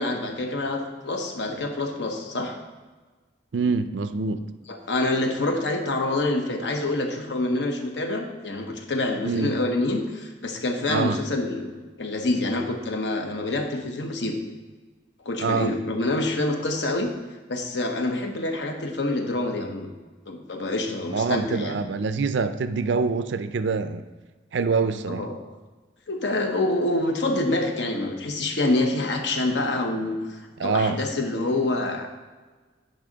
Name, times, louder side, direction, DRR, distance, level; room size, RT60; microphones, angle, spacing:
voice 1, 0.0-2.5 4.7-14.4 15.2-17.1 17.5-19.9 20.3-21.8 25.1-25.4 26.1-32.1, left 2 dB, 75° left, 4 dB, 1.0 m, -26 dB
voice 2, 3.5-4.4 9.3-9.5 10.9-11.2 15.4-15.7 21.1-24.0 24.5-25.2 30.6-31.0, right 4 dB, 80° right, 11 dB, 0.4 m, -25 dB
9.2 x 5.5 x 3.9 m, 1.3 s
head